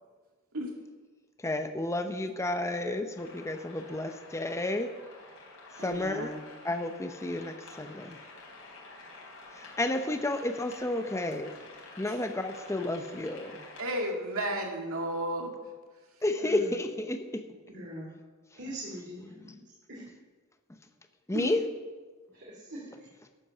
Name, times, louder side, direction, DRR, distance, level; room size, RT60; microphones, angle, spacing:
voice 1, 1.4-4.9 5.8-6.4 6.6-8.2 9.5-11.5 12.0-13.7 16.2-17.4 21.3-21.6, left 1 dB, 15° left, 7 dB, 0.7 m, -31 dB
sound 1, 3.2-13.8, left 3 dB, 75° left, 4.1 m, -49 dB
voice 2, 5.8-6.4 12.1-12.2 13.8-15.5 21.3-21.5, right 1 dB, 75° right, 1 dB, 2.3 m, -33 dB
voice 3, 16.4-16.8 17.7-18.1 18.5-19.6 19.9-20.0 22.3-23.1, right 1 dB, 55° right, -4 dB, 2.5 m, -42 dB
12.0 x 8.5 x 6.6 m, 1.4 s
head